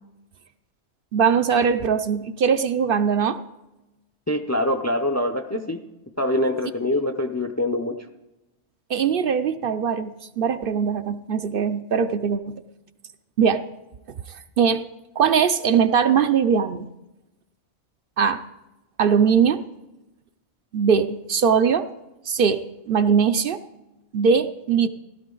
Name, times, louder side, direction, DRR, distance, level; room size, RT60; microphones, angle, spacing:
voice 1, 1.1-3.4 8.9-12.5 13.4-13.6 14.1-14.8 15.2-16.9 18.2-18.4 19.0-19.6 20.7-21.9 22.3-23.6 24.1-24.9, right 6 dB, 60° right, 10 dB, 0.7 m, -21 dB
voice 2, 4.3-5.8 6.2-8.0, left 1 dB, 25° left, 7 dB, 0.4 m, -24 dB
15.0 x 12.5 x 3.9 m, 1.0 s
omnidirectional pair, 1.2 m